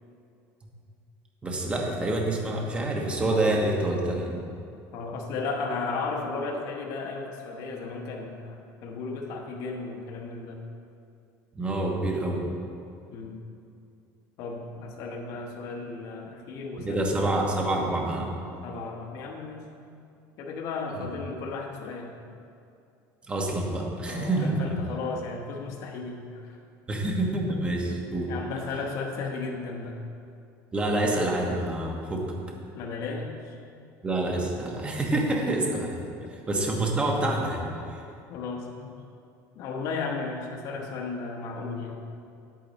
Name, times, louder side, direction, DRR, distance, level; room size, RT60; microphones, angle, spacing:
voice 1, 1.4-4.4 11.5-12.5 16.8-18.3 23.3-24.8 26.9-28.3 30.7-32.3 34.0-36.0 36.3-38.0, right 1 dB, 15° right, 0 dB, 1.2 m, -27 dB
voice 2, 4.9-10.6 13.1-13.4 14.4-17.0 18.6-19.7 20.4-22.2 24.1-26.6 28.3-30.0 32.7-33.6 36.2-36.3 38.3-39.0 39.5-42.0, left 4 dB, 55° left, 0 dB, 1.1 m, -34 dB
9.7 x 8.6 x 4.2 m, 2.5 s
cardioid pair, 150°, 7 cm